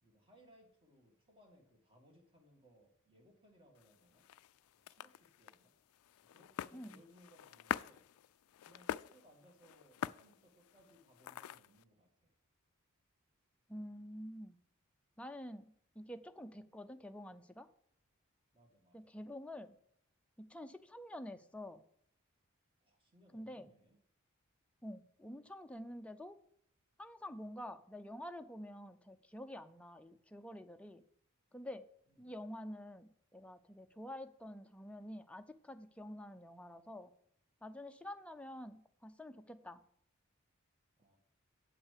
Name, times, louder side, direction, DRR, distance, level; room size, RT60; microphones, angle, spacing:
voice 1, 0.0-4.3 4.7-5.7 6.2-8.0 8.7-12.3 18.5-19.1 22.8-24.0 32.1-32.3 41.0-41.2, equal, 25° right, 1 dB, 2.2 m, -66 dB
sound 1, 3.8-11.8, left 10 dB, 80° left, 0.3 m, -46 dB
voice 2, 13.7-14.6 15.2-17.7 18.9-19.8 20.4-21.8 23.3-23.7 24.8-26.3 27.0-31.0 31.5-31.8 32.2-37.1 37.6-39.8, left 1 dB, 5° left, 7 dB, 0.5 m, -48 dB
8.3 x 5.9 x 6.6 m, 0.66 s
head